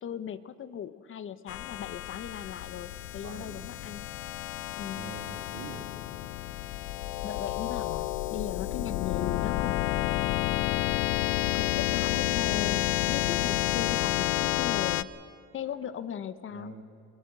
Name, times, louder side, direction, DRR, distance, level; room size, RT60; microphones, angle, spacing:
voice 1, 0.0-4.1 4.8-5.1 7.2-10.5 11.5-15.1 15.5-16.8, left 8 dB, 45° left, 13 dB, 0.9 m, -38 dB
sound 1, 1.5-15.0, left 16 dB, 85° left, 0.6 m, -30 dB
voice 2, 3.2-3.7 5.0-5.9 16.5-16.8, right 6 dB, 80° right, 4 dB, 2.6 m, -44 dB
21.5 x 18.5 x 7.5 m, 2.6 s
supercardioid pair, 95°, 29 cm